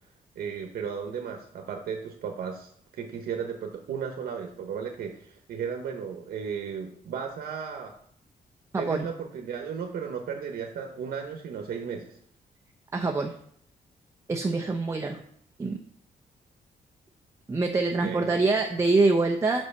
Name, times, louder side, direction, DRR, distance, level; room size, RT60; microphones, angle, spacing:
voice 1, 0.3-2.7 3.0-8.0 8.8-12.2 18.0-18.3, right 6 dB, 85° right, 3 dB, 1.1 m, -35 dB
voice 2, 8.7-9.1 12.9-13.3 14.3-15.2 15.6-15.8 17.5-19.7, right 3 dB, 20° right, 4 dB, 0.6 m, -25 dB
5.5 x 5.5 x 6.7 m, 0.65 s
wide cardioid pair, 155°, 15 cm